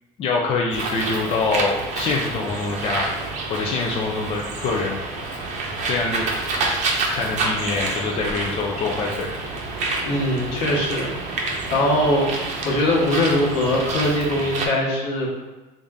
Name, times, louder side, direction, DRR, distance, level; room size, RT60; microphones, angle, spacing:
voice 1, 0.2-3.1 3.5-5.0 5.9-6.2 7.1-9.3, left 3 dB, 35° left, -2 dB, 0.4 m, -24 dB
Bird, 0.7-14.7, right 3 dB, 45° right, 0.7 m, -28 dB
voice 2, 10.1-11.1 11.7-12.3 12.6-15.3, left 1 dB, 70° left, -4 dB, 1.3 m, -21 dB
3.6 x 2.6 x 3.5 m, 1.2 s
cardioid pair, 140°, 17 cm